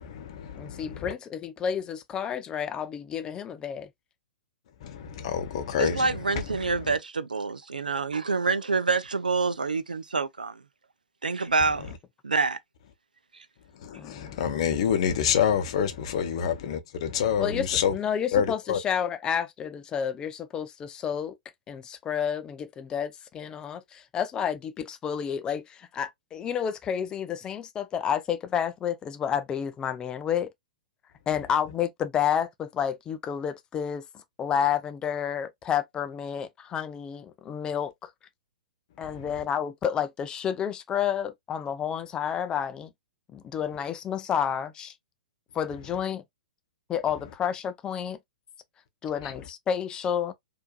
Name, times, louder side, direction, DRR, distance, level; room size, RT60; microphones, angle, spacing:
voice 1, 0.0-1.1 4.8-7.0 11.8-11.9 13.7-17.9 18.3-18.8 39.0-39.3 49.2-49.3, left 8 dB, 45° left, 0.7 m, -28 dB
voice 2, 0.5-3.9 14.0-14.4 17.4-17.7 17.9-21.4 21.7-30.5 31.3-38.1 39.0-42.9 43.3-44.9 45.5-46.2 46.9-48.2 49.0-50.3, left 8 dB, 15° left, 0.4 m, -30 dB
voice 3, 5.8-10.6 11.2-11.9 12.2-12.6, right 4 dB, 75° right, 0.5 m, -27 dB
4.4 x 2.6 x 2.3 m
figure-of-eight pair, 110°, 5 cm